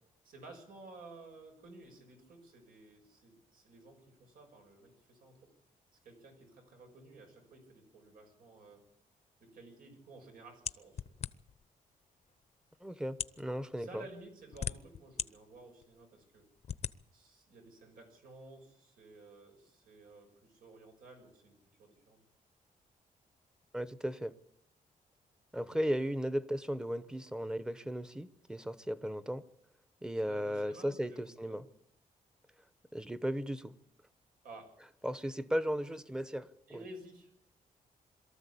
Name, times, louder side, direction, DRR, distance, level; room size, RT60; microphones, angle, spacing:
voice 1, 0.2-5.5 6.0-8.8 9.4-11.2 13.7-16.5 17.1-22.2 25.5-25.8 30.2-31.6 34.4-34.8 36.7-37.3, right 2 dB, 85° right, 6.4 m, -54 dB
sound 1, 10.7-11.6 12.4-12.5 13.1-13.4 14.2-15.3 15.8-15.9 16.6-17.0, left 8 dB, 50° left, 0.8 m, -38 dB
voice 2, 12.8-14.0 23.7-24.3 25.5-29.4 30.0-31.6 32.9-33.7 35.0-36.5, equal, 5° right, 0.9 m, -36 dB
22.5 x 13.5 x 8.5 m
cardioid pair, 125°, 15 cm